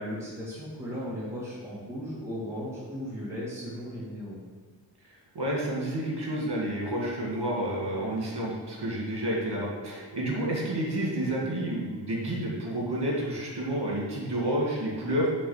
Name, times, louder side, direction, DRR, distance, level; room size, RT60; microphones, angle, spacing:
voice 1, 0.0-4.4, equal, 5° right, -8 dB, 1.7 m, -36 dB
voice 2, 5.3-15.3, right 1 dB, 65° right, -3 dB, 2.1 m, -30 dB
6.6 x 3.7 x 5.6 m, 1.5 s
wide cardioid pair, 75°, 43 cm